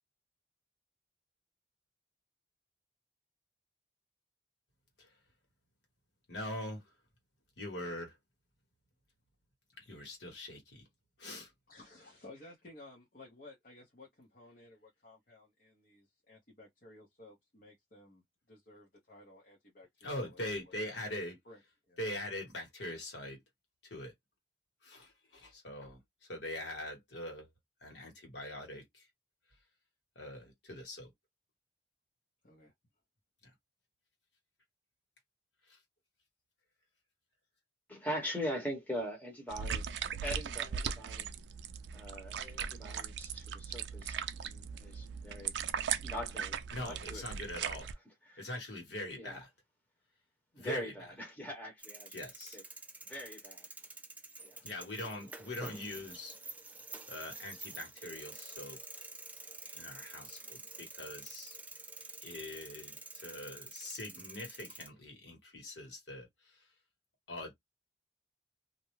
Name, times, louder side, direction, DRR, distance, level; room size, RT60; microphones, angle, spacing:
voice 1, 6.3-6.8 7.6-8.1 9.8-10.9 11.2-11.5 20.0-21.4 22.0-23.4 23.9-24.1 24.8-26.0 26.3-27.5 27.8-29.0 30.1-31.1 46.7-47.9 48.4-49.5 50.6-50.9 52.1-52.6 54.6-56.4 57.1-58.8 59.7-61.6 62.2-63.0 63.2-66.3 67.3-67.5, left 1 dB, 75° left, 1.4 m, -42 dB
voice 2, 11.7-18.2 18.5-20.7 21.0-21.1 21.4-21.6 21.9-22.0 32.4-32.7, left 2 dB, 45° left, 0.9 m, -56 dB
voice 3, 37.9-41.3 41.9-45.6 46.0-47.3 47.8-47.9 48.3-48.5 49.1-49.4 50.5-52.2 52.5-52.6 53.1-53.7 54.4-54.5, equal, 10° left, 1.0 m, -42 dB
sound 1, 39.5-47.9, right 7 dB, 70° right, 0.3 m, -38 dB
sound 2, 51.8-64.9, right 3 dB, 10° right, 0.4 m, -49 dB
2.5 x 2.1 x 3.0 m
head